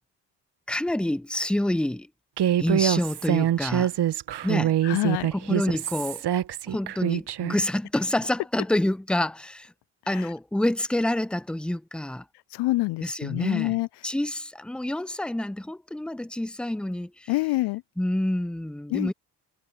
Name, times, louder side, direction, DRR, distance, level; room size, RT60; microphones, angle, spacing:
voice 1, 0.7-2.1 2.6-3.9 4.4-4.7 5.3-6.2 6.7-9.7 10.1-12.2 13.0-13.8 14.0-17.3 18.0-19.1, left 1 dB, ahead, 0.9 m, -27 dB
Human voice, 2.4-7.6, right 11 dB, 55° right, 1.8 m, -25 dB
voice 2, 4.8-5.3 10.1-10.3 12.5-13.9 17.3-17.8 18.9-19.1, left 19 dB, 55° left, 0.6 m, -26 dB
hypercardioid pair, 55°, 48 cm